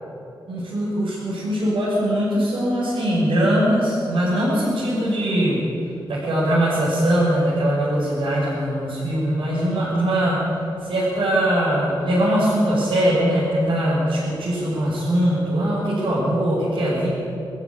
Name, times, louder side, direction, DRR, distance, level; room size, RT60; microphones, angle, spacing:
voice 1, 0.5-5.7 6.1-10.4 10.8-17.1, right 1 dB, 90° right, -8 dB, 6.3 m, -21 dB
21.5 x 14.5 x 8.8 m, 2.8 s
wide cardioid pair, 130°, 9 cm